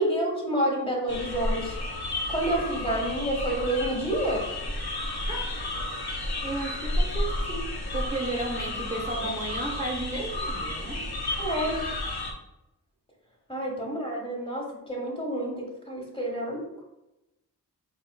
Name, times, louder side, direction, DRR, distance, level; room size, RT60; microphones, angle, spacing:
voice 1, 0.0-1.7 2.3-4.4 11.4-11.8 13.5-16.8, right 1 dB, 15° left, -2 dB, 1.4 m, -29 dB
sound 1, 1.1-12.3, left 1 dB, 80° left, 0.9 m, -32 dB
voice 2, 6.4-7.6 7.9-11.0 13.9-14.0, right 2 dB, 20° right, -2 dB, 0.9 m, -33 dB
4.7 x 4.0 x 2.3 m, 0.93 s
wide cardioid pair, 65°, 38 cm